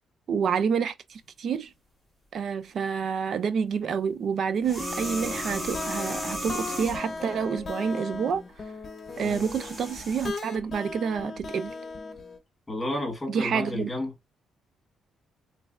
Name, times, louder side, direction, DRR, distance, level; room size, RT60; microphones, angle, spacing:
voice 1, 0.3-1.7 2.3-8.4 9.2-11.7 13.3-13.9, right 6 dB, 60° right, 0.5 m, -28 dB
sound 1, 4.6-7.2 9.0-10.3, equal, 15° right, 1.8 m, -35 dB
sound 2, 4.8-12.4, left 3 dB, 40° left, 0.8 m, -37 dB
voice 2, 12.7-14.1, left 1 dB, 15° left, 1.8 m, -31 dB
3.3 x 3.1 x 2.4 m
cardioid pair, 90°, 0 cm